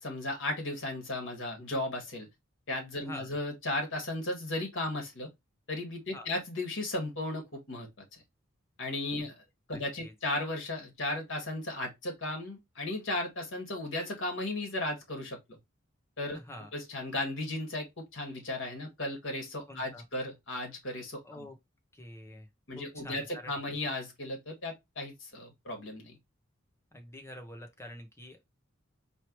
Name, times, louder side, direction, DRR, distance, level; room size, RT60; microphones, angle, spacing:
voice 1, 0.0-2.3 2.7-5.3 5.7-8.2 8.8-9.4 9.7-15.6 16.2-16.4 16.7-17.9 18.1-21.5 22.7-26.2, left 2 dB, 65° left, 1.7 m, -35 dB
voice 2, 3.0-3.3 6.1-6.3 9.2-9.3 9.7-10.1 16.3-16.7 19.7-20.0 21.2-21.6 21.9-22.5 22.8-23.6 26.9-28.4, left 1 dB, 15° left, 0.8 m, -46 dB
4.5 x 3.1 x 3.0 m
head